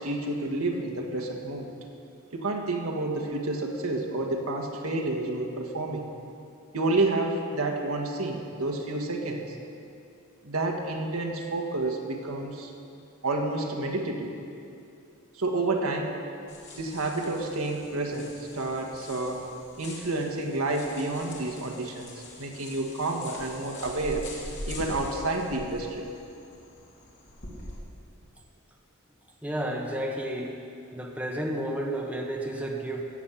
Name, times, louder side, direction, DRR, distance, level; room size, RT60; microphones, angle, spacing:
voice 1, 0.0-1.7 2.3-6.1 6.7-9.6 10.4-12.7 13.2-14.4 15.3-16.2 16.8-19.5 19.8-22.1 22.4-24.3 24.7-26.1, right 2 dB, 70° right, 1 dB, 1.7 m, -29 dB
sound 1, 16.5-27.8, left 1 dB, 55° left, 2.9 m, -44 dB
voice 2, 29.4-30.6 30.9-33.1, right 1 dB, 5° right, 0 dB, 1.3 m, -31 dB
15.0 x 7.5 x 8.8 m, 2.5 s
head